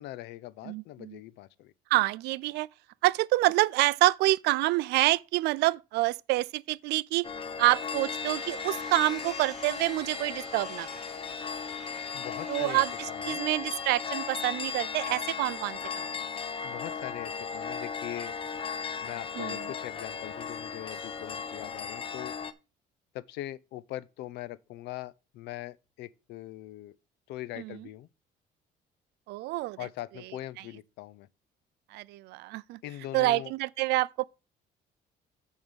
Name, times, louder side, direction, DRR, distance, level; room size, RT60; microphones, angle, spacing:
voice 1, 0.0-1.7 12.1-13.4 16.6-18.4 19.0-22.3 23.1-26.9 27.3-28.1 29.8-31.3 32.8-33.5, left 15 dB, 80° left, 0.5 m, -41 dB
voice 2, 0.6-1.2 1.9-2.7 3.0-7.3 7.6-10.9 12.5-12.9 13.3-16.1 19.4-19.6 27.6-27.8 29.3-29.8 31.9-32.8 33.1-34.2, right 19 dB, 80° right, 0.4 m, -27 dB
sound 1, 7.2-22.5, left 6 dB, 30° left, 0.7 m, -36 dB
sound 2, 7.6-15.5, right 1 dB, ahead, 3.3 m, -50 dB
8.9 x 3.6 x 6.2 m
cardioid pair, 110°, 17 cm